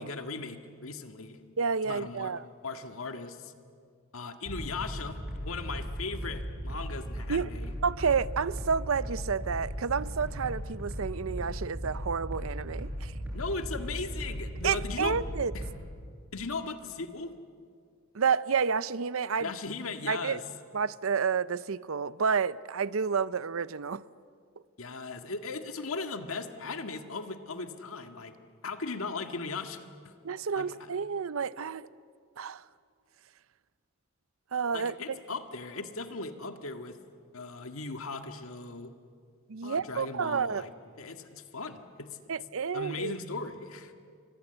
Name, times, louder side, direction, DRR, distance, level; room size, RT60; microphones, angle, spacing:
voice 1, 0.0-1.4 1.8-3.5 4.1-7.7 13.3-15.2 15.5-15.6 16.3-17.3 19.4-20.4 24.8-28.4 28.6-30.1 30.6-30.9 34.7-37.0 37.3-38.9 39.6-40.7 41.0-42.1 42.7-43.9, left 3 dB, 85° left, 1.8 m, -38 dB
voice 2, 1.6-2.4 7.3-7.5 7.8-13.1 14.6-15.5 18.1-19.5 20.1-20.4 20.7-24.0 30.2-31.9 32.4-32.6 34.5-35.2 39.5-40.6 42.3-43.2, right 6 dB, 75° right, 0.6 m, -30 dB
sound 1, 4.4-15.7, equal, 10° right, 7.6 m, -37 dB
30.0 x 24.5 x 8.1 m
head